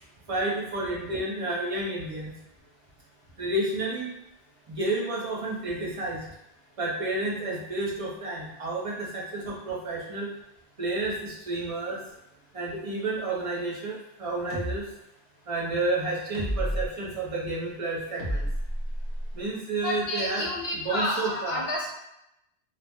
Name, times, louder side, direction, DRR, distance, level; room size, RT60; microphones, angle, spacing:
voice 1, 0.3-2.3 3.4-4.1 4.7-6.3 6.8-10.3 10.8-12.0 12.5-14.8 15.5-18.5 19.3-20.4 20.8-21.6, right 2 dB, 35° right, -4 dB, 0.7 m, -30 dB
sound 1, 14.5-14.8 16.3-16.9 18.2-19.3, equal, 30° left, 0.8 m, -30 dB
voice 2, 19.8-21.9, left 1 dB, 70° left, -4 dB, 1.0 m, -30 dB
2.5 x 2.0 x 3.4 m, 0.85 s
omnidirectional pair, 1.1 m